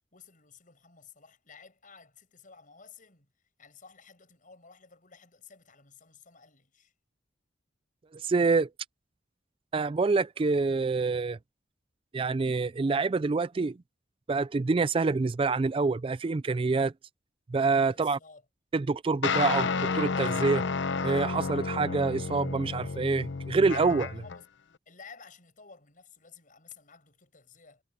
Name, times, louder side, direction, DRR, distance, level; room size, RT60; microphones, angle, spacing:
voice 1, 0.1-3.3 3.6-6.9 17.9-18.4 24.1-24.5 24.9-27.8, left 5 dB, 50° left, 6.7 m, -53 dB
voice 2, 8.1-8.7 9.7-11.4 12.1-13.8 14.3-16.9 17.5-18.2 18.7-19.7 19.9-20.6 21.0-24.2, right 4 dB, 30° right, 0.4 m, -26 dB
sound 1, 19.2-24.4, left 4 dB, 85° left, 0.7 m, -31 dB
head